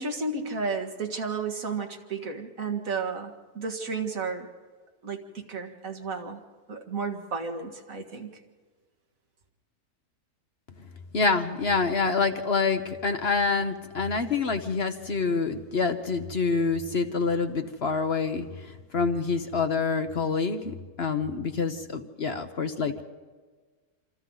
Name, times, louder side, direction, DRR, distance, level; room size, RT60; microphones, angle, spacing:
voice 1, 0.0-4.5 5.0-6.4 6.7-8.3, right 4 dB, 65° right, 4 dB, 2.2 m, -32 dB
voice 2, 11.1-23.0, left 4 dB, 50° left, 8 dB, 1.1 m, -27 dB
27.0 x 26.5 x 3.9 m, 1.4 s
omnidirectional pair, 1.6 m